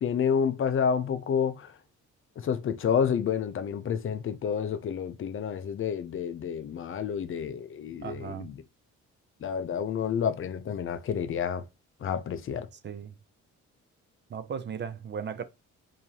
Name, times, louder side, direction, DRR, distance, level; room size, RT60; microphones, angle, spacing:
voice 1, 0.0-1.7 2.4-8.5 9.4-11.6 12.0-12.7, left 7 dB, 45° left, 0.5 m, -29 dB
voice 2, 8.0-8.5 12.8-13.1 14.3-15.4, right 7 dB, 40° right, 0.4 m, -36 dB
4.5 x 2.7 x 2.7 m
cardioid pair, 90°, 30 cm